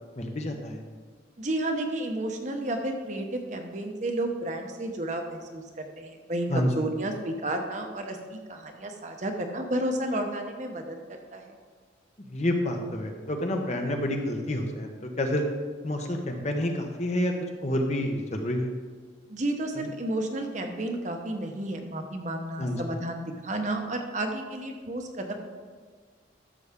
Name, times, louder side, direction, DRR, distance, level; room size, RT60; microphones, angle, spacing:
voice 1, 0.2-0.8 6.5-6.7 12.2-15.4 15.8-17.3 17.6-18.7 19.8-19.9 22.6-23.0, left 1 dB, 40° left, 3 dB, 1.0 m, -29 dB
voice 2, 1.4-11.0 11.3-11.5 19.3-25.3, right 1 dB, 40° right, 3 dB, 1.0 m, -32 dB
12.0 x 7.0 x 3.6 m, 1.5 s
head